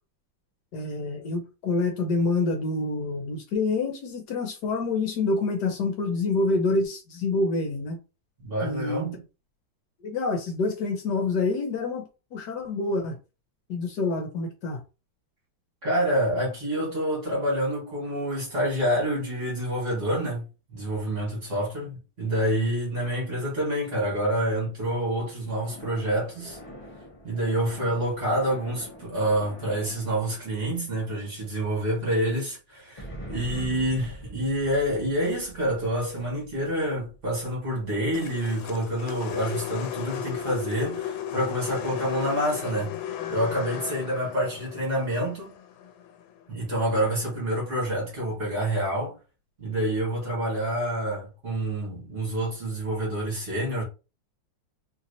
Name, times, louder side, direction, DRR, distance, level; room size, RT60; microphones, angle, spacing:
voice 1, 0.7-8.0 8.6-9.1 10.0-13.2 13.7-14.8, left 3 dB, 70° left, 1.3 m, -27 dB
voice 2, 8.4-9.2 15.8-26.6 27.2-42.9 43.3-45.5 46.5-49.2 49.6-53.8, right 1 dB, 40° right, 1.8 m, -27 dB
sound 1, 25.6-31.5 33.0-38.3, equal, 40° left, 0.4 m, -44 dB
sound 2, 38.1-46.4, left 9 dB, 90° left, 1.3 m, -35 dB
3.2 x 2.8 x 2.6 m
omnidirectional pair, 2.1 m